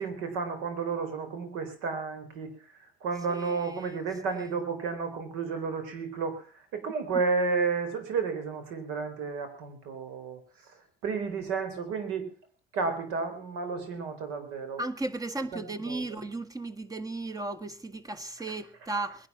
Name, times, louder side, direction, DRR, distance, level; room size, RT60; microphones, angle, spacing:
voice 1, 0.0-2.5 3.0-6.4 6.7-10.4 11.0-12.3 12.7-14.8 15.5-16.2 18.5-18.6, right 4 dB, 90° right, 4.1 m, -32 dB
voice 2, 3.3-4.0 14.8-19.3, right 2 dB, 15° right, 1.6 m, -35 dB
20.0 x 11.5 x 6.2 m
cardioid pair, 100°, 21 cm